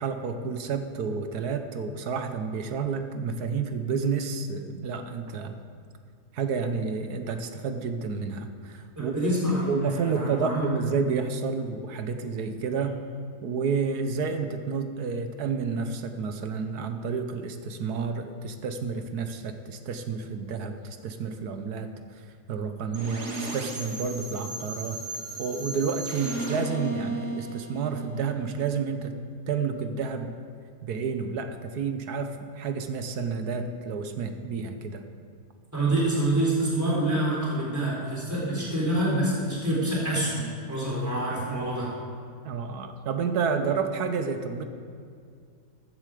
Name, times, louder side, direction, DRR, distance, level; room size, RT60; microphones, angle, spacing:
voice 1, 0.0-5.6 6.3-9.2 9.5-12.9 13.4-20.7 21.0-21.9 22.5-25.0 25.4-29.2 29.5-30.3 30.8-35.0 42.4-44.6, right 5 dB, 75° right, 8 dB, 1.4 m, -30 dB
voice 2, 9.0-10.6 12.6-12.7 35.7-41.9, right 1 dB, 10° right, -6 dB, 3.7 m, -27 dB
sound 1, 22.9-28.7, right 2 dB, 45° right, 1.9 m, -35 dB
14.5 x 11.0 x 5.0 m, 2.3 s
omnidirectional pair, 1.7 m